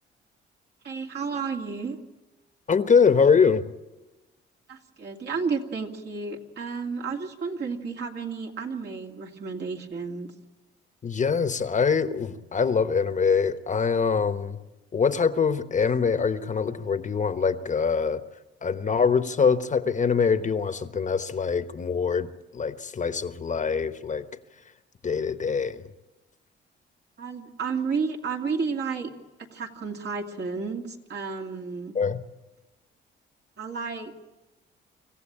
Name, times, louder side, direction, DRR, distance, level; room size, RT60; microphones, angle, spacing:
voice 1, 0.8-2.0 4.7-10.3 27.2-29.1 29.4-32.0 33.6-34.1, right 5 dB, 60° right, 2 dB, 2.5 m, -32 dB
voice 2, 2.7-3.6 11.0-14.6 14.9-18.2 18.6-22.3 22.5-24.2 25.0-25.9 31.9-32.2, left 5 dB, 40° left, 10 dB, 1.2 m, -24 dB
25.5 x 15.0 x 8.8 m, 1.1 s
cardioid pair, 90°, 20 cm